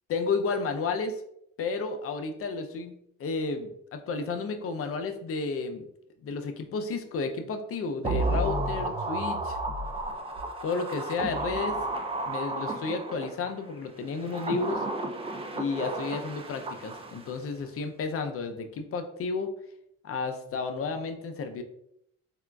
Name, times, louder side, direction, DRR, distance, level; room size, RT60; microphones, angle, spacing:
voice 1, 0.1-1.2 1.6-5.9 6.2-9.6 10.6-11.8 12.2-14.8 15.5-19.5 20.0-21.6, left 4 dB, 50° left, 7 dB, 0.5 m, -32 dB
sound 1, 8.0-13.5 14.1-17.4 17.6-17.7, right 2 dB, 20° right, 0.3 m, -32 dB
3.6 x 2.3 x 2.2 m, 0.73 s
cardioid pair, 90°, 30 cm